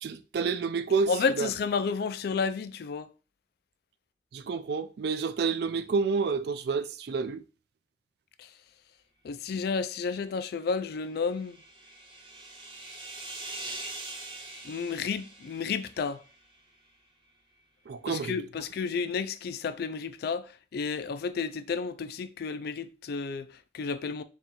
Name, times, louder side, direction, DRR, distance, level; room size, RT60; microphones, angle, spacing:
voice 1, 0.0-1.5 4.3-7.4 17.9-18.4, right 5 dB, 60° right, 0.4 m, -29 dB
voice 2, 1.1-3.1 8.4-8.5 9.2-11.6 14.6-16.2 18.1-24.2, left 5 dB, 60° left, 0.3 m, -31 dB
sound 1, 10.8-16.4, right 2 dB, 25° right, 0.7 m, -43 dB
4.1 x 2.4 x 3.7 m
head